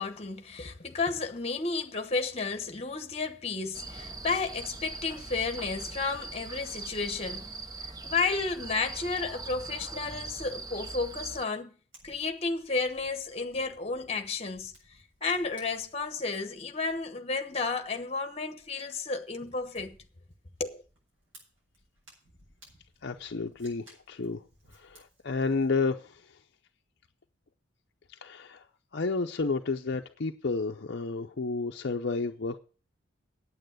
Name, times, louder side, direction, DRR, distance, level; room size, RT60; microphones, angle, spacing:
voice 1, 0.0-7.5 7.8-11.7 12.0-14.7 15.2-20.0 20.6-20.8, left 4 dB, 30° left, 1.0 m, -32 dB
sound 1, 3.7-11.4, right 3 dB, 20° right, 0.5 m, -41 dB
Fire, 11.9-25.7, right 1 dB, 65° right, 7.5 m, -61 dB
voice 2, 23.0-24.4 24.7-26.4 28.2-28.6 28.9-32.6, left 4 dB, 55° left, 0.6 m, -31 dB
9.1 x 8.5 x 7.8 m
head